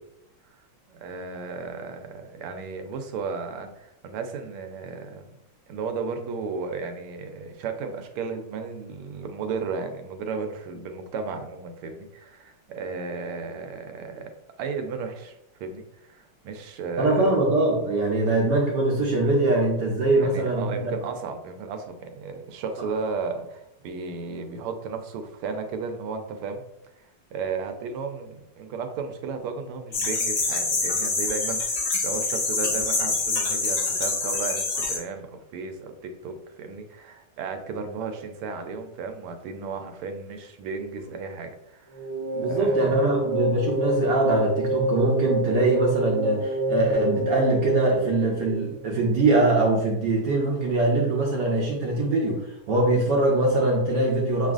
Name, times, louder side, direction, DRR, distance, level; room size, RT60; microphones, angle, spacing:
voice 1, 0.9-5.4 5.7-14.3 14.6-17.3 20.1-26.6 27.3-42.1 42.4-43.2, right 5 dB, 85° right, 6 dB, 1.5 m, -34 dB
voice 2, 17.0-20.9 42.4-54.5, right 2 dB, 65° right, -1 dB, 1.1 m, -23 dB
sound 1, 29.9-35.0, left 3 dB, 55° left, 0.9 m, -26 dB
sound 2, 41.9-49.1, right 1 dB, 30° right, 0.5 m, -27 dB
6.6 x 2.4 x 2.4 m, 0.84 s
omnidirectional pair, 2.3 m